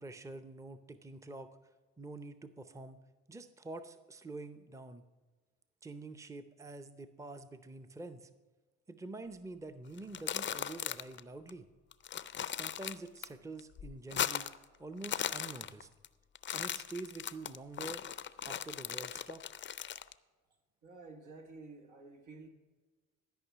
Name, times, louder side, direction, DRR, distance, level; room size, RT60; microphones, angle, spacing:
voice 1, 0.0-1.5 2.0-3.0 3.3-5.1 5.8-8.3 8.9-11.7 12.4-14.5 14.8-15.9 16.5-18.0 18.4-19.4, right 2 dB, 10° right, 10 dB, 0.6 m, -46 dB
sound 1, 10.0-11.2 11.5-11.6 11.9-13.3 13.6-14.6 14.9-16.1 16.4-20.1, left 9 dB, 40° left, 0.5 m, -38 dB
voice 2, 20.8-22.5, right 3 dB, 80° right, 4 dB, 1.6 m, -51 dB
13.0 x 5.4 x 7.3 m, 1.3 s
cardioid pair, 90°, 30 cm